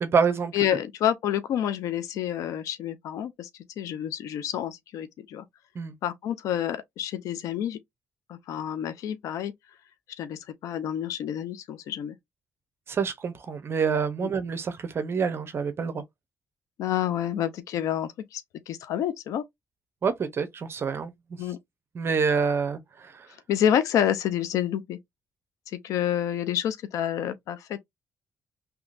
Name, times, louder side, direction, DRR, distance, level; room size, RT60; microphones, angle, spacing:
voice 1, 0.0-0.5 5.7-5.9 12.9-16.0 20.0-21.1 21.9-23.3, right 5 dB, 50° right, 0.7 m, -27 dB
voice 2, 0.5-3.5 3.8-5.4 6.0-7.8 8.3-9.5 10.2-12.1 16.8-19.4 21.4-21.6 23.5-25.0 25.7-27.8, left 10 dB, 85° left, 0.6 m, -28 dB
3.6 x 2.9 x 2.5 m
cardioid pair, 90°, 5 cm